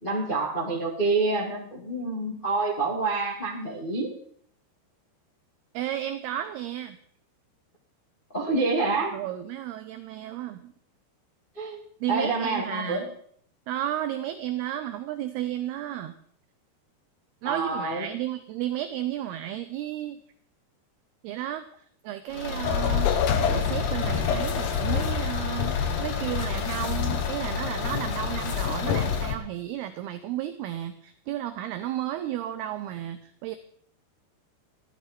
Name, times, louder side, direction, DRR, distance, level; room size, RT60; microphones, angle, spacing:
voice 1, 0.0-4.1 8.3-9.2 11.5-11.8 12.1-13.0 17.4-18.0, right 3 dB, 40° left, -5 dB, 0.7 m, -27 dB
voice 2, 5.7-7.0 9.1-10.7 12.0-13.0 13.7-16.2 17.4-20.2 21.2-21.6 22.0-23.1 23.5-33.6, right 12 dB, 85° right, 9 dB, 2.2 m, -33 dB
Car / Engine, 22.3-29.4, left 4 dB, 65° left, 3.3 m, -33 dB
sound 1, 22.6-29.4, left 7 dB, 90° left, 1.8 m, -27 dB
14.0 x 12.0 x 4.4 m, 0.62 s
omnidirectional pair, 5.3 m